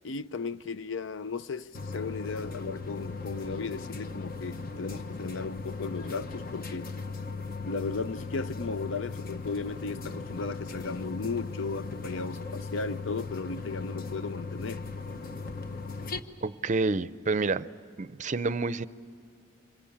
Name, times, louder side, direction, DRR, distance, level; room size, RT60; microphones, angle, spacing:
voice 1, 0.0-7.0 7.6-14.8, left 4 dB, 70° left, 0.6 m, -35 dB
sound 1, 1.7-16.2, left 4 dB, 50° left, 1.0 m, -38 dB
voice 2, 16.4-17.7 18.0-18.9, right 3 dB, 40° right, 0.5 m, -28 dB
26.0 x 22.5 x 8.7 m
head